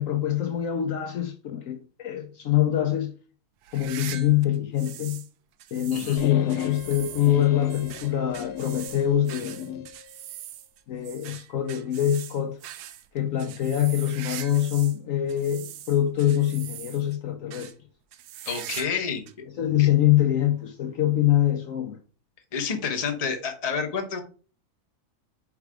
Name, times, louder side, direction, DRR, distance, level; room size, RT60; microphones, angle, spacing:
voice 1, 0.0-3.1 3.7-5.2 5.7-9.6 10.9-12.6 13.1-17.7 19.6-22.0, left 12 dB, 65° left, 1.0 m, -24 dB
sound 1, 3.6-5.3 5.6-15.0 15.3-17.2 17.5-17.7 18.1-19.0 19.3-19.4 20.1-20.2 21.5-21.6, right 11 dB, 90° right, 1.1 m, -42 dB
sound 2, 6.2-9.9, left 9 dB, 85° left, 1.2 m, -34 dB
voice 2, 18.4-19.4 19.8-19.9 22.5-24.2, left 6 dB, 30° left, 0.9 m, -29 dB
4.8 x 4.7 x 4.8 m
omnidirectional pair, 1.6 m